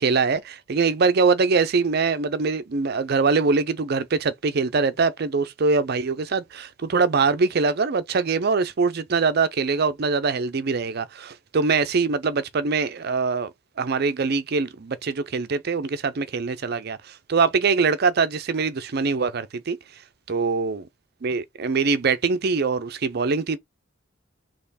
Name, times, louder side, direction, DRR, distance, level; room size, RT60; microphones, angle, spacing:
voice 1, 0.0-13.5 13.8-19.8 20.3-20.8 21.2-23.6, right 4 dB, 50° right, 0.5 m, -23 dB
4.3 x 3.0 x 4.0 m
head